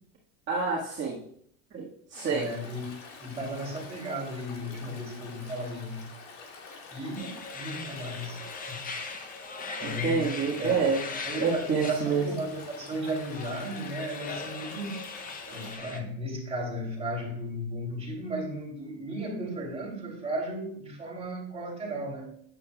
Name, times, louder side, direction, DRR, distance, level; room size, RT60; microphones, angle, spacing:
voice 1, 0.5-1.2 1.7-2.5 9.8-11.1 11.4-12.4, right 5 dB, 35° right, -5 dB, 1.8 m, -28 dB
Stream, 2.1-15.8, left 4 dB, 80° left, 2.4 m, -47 dB
voice 2, 2.2-6.1 6.9-8.9 9.8-10.8 11.2-15.0 15.4-22.3, right 1 dB, 15° right, -2 dB, 3.3 m, -35 dB
sound 1, 7.2-16.0, left 4 dB, 25° left, 0.8 m, -40 dB
8.5 x 8.2 x 2.4 m, 0.64 s
cardioid pair, 125°, 35 cm